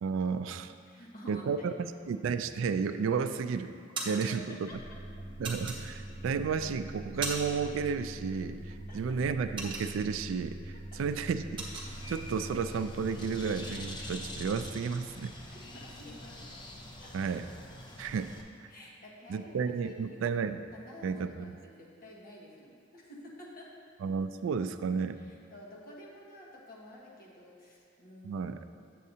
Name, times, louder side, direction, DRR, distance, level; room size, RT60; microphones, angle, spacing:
voice 1, 0.0-0.7 1.3-3.7 4.1-4.7 5.4-8.6 8.9-10.5 11.0-11.7 12.1-15.3 17.1-17.4 18.0-18.3 19.3-20.6 21.0-21.3 24.0-25.2 28.2-28.6, right 5 dB, 70° right, 11 dB, 0.3 m, -32 dB
voice 2, 0.8-1.7 4.1-5.0 8.9-9.2 10.9-11.0 15.5-16.5 16.9-17.3 18.7-20.2 20.7-23.7 25.1-28.5 28.8-29.0, left 1 dB, 50° left, -4 dB, 1.3 m, -50 dB
sound 1, 2.9-3.3 3.7-4.3 5.4-6.3 6.7-7.7 8.0-8.2 8.6-10.3 10.7-10.9 11.1-11.9, right 3 dB, 25° right, 1.1 m, -38 dB
sound 2, 4.7-14.7, right 1 dB, 10° right, 1.5 m, -44 dB
Bird, 11.9-18.4, left 1 dB, 25° left, 0.6 m, -46 dB
8.2 x 7.6 x 2.7 m, 2.2 s
head